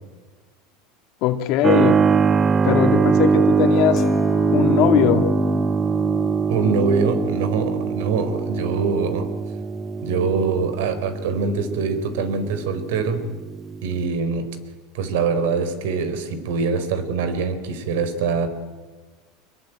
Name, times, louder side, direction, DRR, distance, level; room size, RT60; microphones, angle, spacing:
voice 1, 1.2-2.0 2.6-4.0 4.5-5.3, left 11 dB, 60° left, 6 dB, 2.2 m, -20 dB
Keyboard (musical), 1.6-14.0, right 6 dB, 25° right, 0.8 m, -22 dB
sound 1, 3.9-10.2 10.6-10.9, left 6 dB, 30° left, 2.7 m, -32 dB
voice 2, 6.5-9.3 10.0-13.2 13.8-14.5 14.9-18.5, right 5 dB, 80° right, 11 dB, 4.0 m, -24 dB
26.0 x 22.0 x 9.1 m, 1.3 s
supercardioid pair, 120°, 0 cm